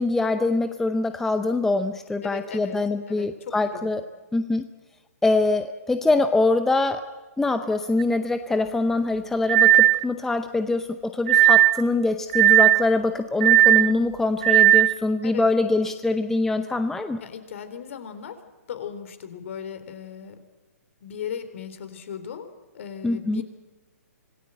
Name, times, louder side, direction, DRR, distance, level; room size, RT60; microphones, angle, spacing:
voice 1, 0.0-4.0 4.3-4.6 5.2-7.1 7.4-17.2 23.0-23.4, left 2 dB, 5° left, 9 dB, 0.7 m, -24 dB
voice 2, 2.2-2.8 3.1-3.9 15.2-15.5 17.2-18.4 18.7-20.4 21.0-23.4, left 8 dB, 55° left, 10 dB, 3.6 m, -37 dB
sound 1, 8.0-8.1 9.5-10.0 11.3-11.8 12.3-12.9 13.4-13.9 14.4-14.9, right 13 dB, 45° right, 0.7 m, -16 dB
26.0 x 19.0 x 7.7 m, 1.3 s
hypercardioid pair, 150°, 8 cm